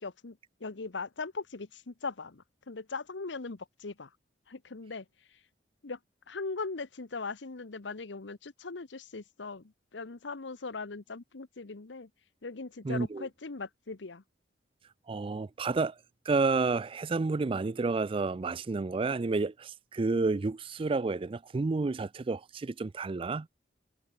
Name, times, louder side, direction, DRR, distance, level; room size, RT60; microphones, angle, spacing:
voice 1, 0.0-4.1 4.5-5.0 5.8-6.0 6.3-12.1 12.4-14.2, left 4 dB, 80° left, 1.0 m, -40 dB
voice 2, 12.8-13.3 15.1-15.9 16.3-23.5, right 3 dB, 30° right, 0.4 m, -30 dB
head